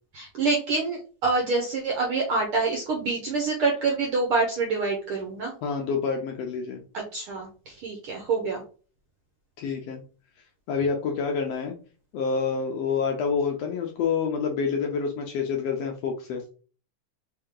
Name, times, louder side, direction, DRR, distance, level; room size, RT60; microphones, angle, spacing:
voice 1, 0.1-5.5 6.9-8.6, right 3 dB, 70° right, 0 dB, 1.3 m, -26 dB
voice 2, 5.6-6.8 9.6-10.0 10.7-11.7 12.1-16.4, left 5 dB, 75° left, 2 dB, 1.5 m, -27 dB
5.1 x 2.8 x 3.7 m, 0.39 s
omnidirectional pair, 3.6 m